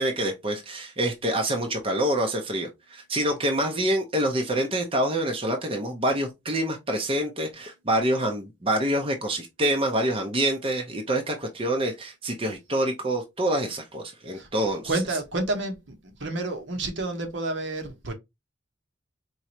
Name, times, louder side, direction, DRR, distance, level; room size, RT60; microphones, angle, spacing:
voice 1, 0.0-14.9, right 1 dB, 30° right, 0.7 m, -26 dB
voice 2, 14.8-18.1, right 2 dB, 65° right, 1.0 m, -30 dB
4.6 x 3.0 x 2.8 m
head